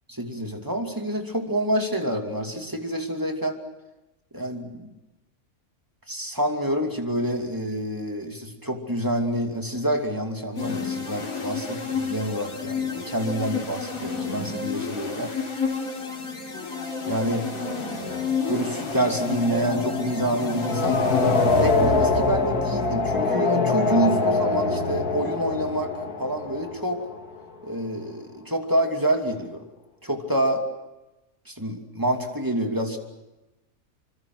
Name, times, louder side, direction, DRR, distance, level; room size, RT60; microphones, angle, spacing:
voice 1, 0.1-3.6 4.3-4.9 6.1-15.3 17.1-17.5 18.5-25.9 26.2-27.1 27.6-29.6 30.0-30.6 31.5-33.0, right 1 dB, 15° right, 3 dB, 2.7 m, -27 dB
sound 1, 10.5-22.3, left 5 dB, 65° left, 3.6 m, -31 dB
sound 2, 16.5-27.4, left 3 dB, 85° left, 2.6 m, -25 dB
26.5 x 25.5 x 6.3 m, 1.0 s
omnidirectional pair, 1.6 m